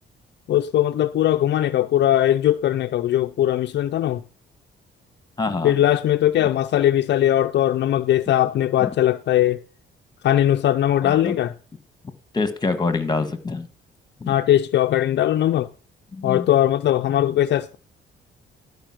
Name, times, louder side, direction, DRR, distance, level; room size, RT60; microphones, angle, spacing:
voice 1, 0.5-4.2 5.6-9.6 10.2-11.5 14.3-15.7 16.2-17.8, left 12 dB, 60° left, 0.5 m, -20 dB
voice 2, 5.4-5.8 8.8-8.9 11.0-11.4 12.3-13.7 14.2-14.3 16.1-16.5, left 3 dB, 20° left, 1.7 m, -25 dB
12.5 x 5.2 x 6.0 m
cardioid pair, 90°, 20 cm